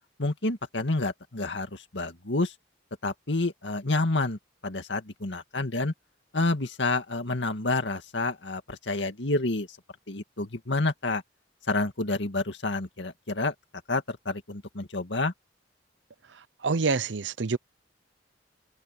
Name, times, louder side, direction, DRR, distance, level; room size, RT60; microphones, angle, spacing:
voice 1, 0.2-2.5 3.0-5.9 6.3-9.8 10.1-11.2 11.7-13.5 13.9-15.3, left 2 dB, 80° left, 2.1 m, -29 dB
voice 2, 16.6-17.6, right 4 dB, 85° right, 0.8 m, -26 dB
head